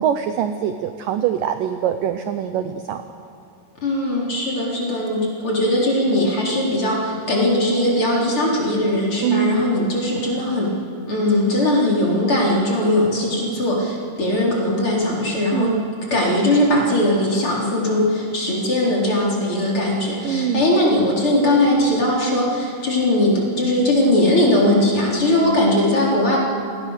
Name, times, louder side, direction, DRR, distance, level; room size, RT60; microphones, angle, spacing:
voice 1, 0.0-3.0 9.2-9.7 15.5-15.9 20.2-20.7, right 10 dB, 80° right, 8 dB, 2.0 m, -23 dB
voice 2, 3.8-10.8 11.1-15.7 16.1-26.4, left 1 dB, 30° left, -3 dB, 4.4 m, -19 dB
28.0 x 20.5 x 6.6 m, 2.5 s
omnidirectional pair, 4.9 m